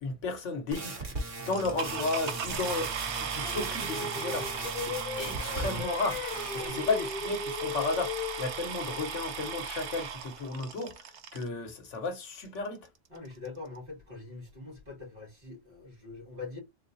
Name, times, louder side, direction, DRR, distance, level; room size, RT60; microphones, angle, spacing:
voice 1, 0.0-1.1 1.4-4.5 4.8-6.2 6.5-12.9, left 3 dB, 80° left, 1.3 m, -34 dB
sound 1, 0.7-5.8 6.1-6.7, right 2 dB, 85° right, 1.9 m, -38 dB
sound 2, 1.5-11.5 12.3-12.4 12.9-13.0 13.2-13.5, right 6 dB, 70° right, 1.0 m, -37 dB
Singing, 3.4-8.6, left 5 dB, 55° left, 0.8 m, -38 dB
voice 2, 13.1-16.6, left 3 dB, 50° right, 2.6 m, -43 dB
3.9 x 3.8 x 2.6 m
omnidirectional pair, 1.2 m